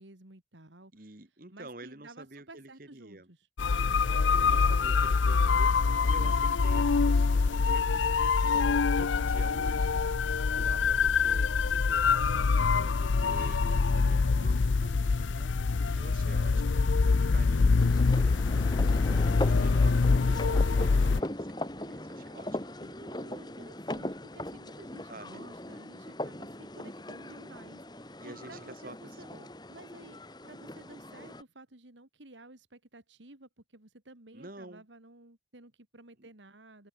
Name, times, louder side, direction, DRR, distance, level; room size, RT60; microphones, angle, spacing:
voice 1, 0.0-1.1 1.5-3.5 6.2-6.5 13.9-14.3 16.3-16.7 23.0-29.3 29.7-36.9, right 2 dB, 80° right, 2.8 m, -53 dB
voice 2, 0.9-3.3 4.3-10.0 10.6-23.0 25.1-25.4 28.2-29.0 29.3-29.5 34.3-34.8 36.2-36.3, right 2 dB, 50° right, 2.0 m, -49 dB
sound 1, 3.6-21.2, left 4 dB, 90° left, 0.6 m, -25 dB
sound 2, 17.8-31.4, left 1 dB, 20° left, 2.6 m, -39 dB
head